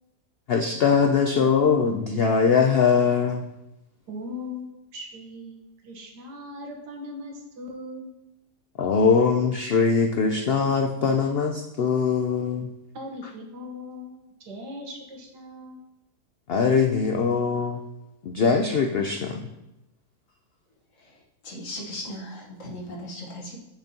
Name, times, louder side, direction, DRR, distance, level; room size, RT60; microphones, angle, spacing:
voice 1, 0.5-3.5 8.8-12.7 16.5-17.8 18.2-19.5, left 5 dB, 80° left, 4 dB, 0.5 m, -22 dB
voice 2, 4.1-5.6 5.8-8.1 12.9-15.8, left 1 dB, 90° right, 2 dB, 1.8 m, -39 dB
voice 3, 21.4-23.6, left 1 dB, 55° left, -1 dB, 1.6 m, -37 dB
10.5 x 6.1 x 2.9 m, 0.92 s
omnidirectional pair, 1.7 m